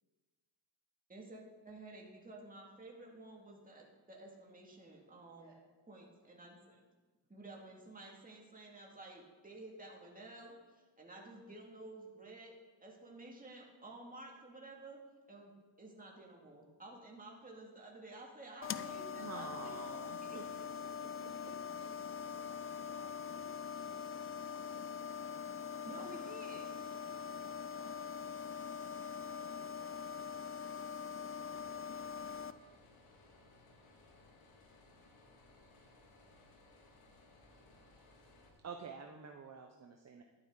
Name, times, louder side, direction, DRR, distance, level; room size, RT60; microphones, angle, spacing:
voice 1, 1.1-5.5 5.9-6.8 7.3-19.7 20.3-20.4 25.8-26.8, right 2 dB, 15° right, -1 dB, 2.2 m, -52 dB
sound 1, 18.6-32.5, left 7 dB, 30° left, 0.4 m, -43 dB
voice 2, 19.1-20.4 21.0-21.1 38.6-40.2, right 5 dB, 30° right, 4 dB, 0.8 m, -48 dB
voice 3, 21.1-25.4 27.7-28.2 29.3-29.6, right 2 dB, 55° right, -3 dB, 3.2 m, -63 dB
sound 2, 31.5-38.5, left 2 dB, 80° left, 2.2 m, -63 dB
11.0 x 9.6 x 3.8 m, 1.3 s
cardioid pair, 80°, 50 cm